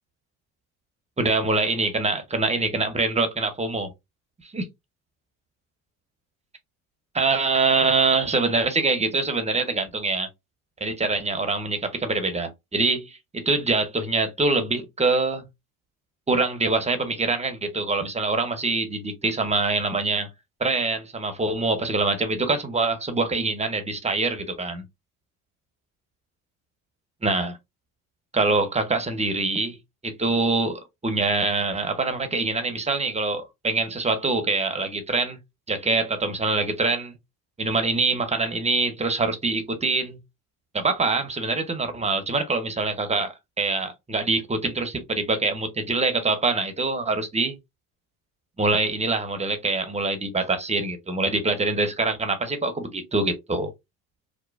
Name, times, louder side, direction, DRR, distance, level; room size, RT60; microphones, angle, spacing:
voice 1, 1.2-3.9 4.5-4.6 7.1-10.3 10.8-15.4 16.3-20.3 20.6-24.9 27.2-27.6 28.3-29.8 30.0-35.4 35.7-37.1 37.6-40.2 40.7-47.5 48.6-53.7, right 3 dB, 15° right, 0.7 m, -24 dB
3.0 x 2.1 x 2.4 m
hypercardioid pair, 70°, 44 cm